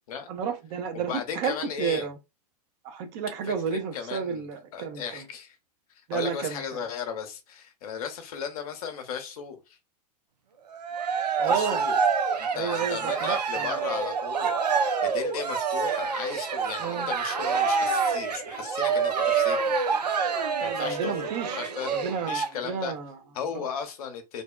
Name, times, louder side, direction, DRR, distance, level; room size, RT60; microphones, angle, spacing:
voice 1, 0.3-2.2 2.8-5.2 6.1-6.6 11.4-11.8 12.5-14.0 16.8-17.1 20.6-21.6 21.9-23.2 23.5-23.7, right 6 dB, 45° right, 0.7 m, -32 dB
voice 2, 0.9-2.1 3.4-5.6 6.1-9.8 11.4-12.0 12.4-19.8 20.6-22.9 23.3-24.4, left 7 dB, 65° left, 0.7 m, -36 dB
Cheering, 10.7-22.5, right 5 dB, 85° right, 0.5 m, -27 dB
2.6 x 2.1 x 2.3 m
hypercardioid pair, 95°, 21 cm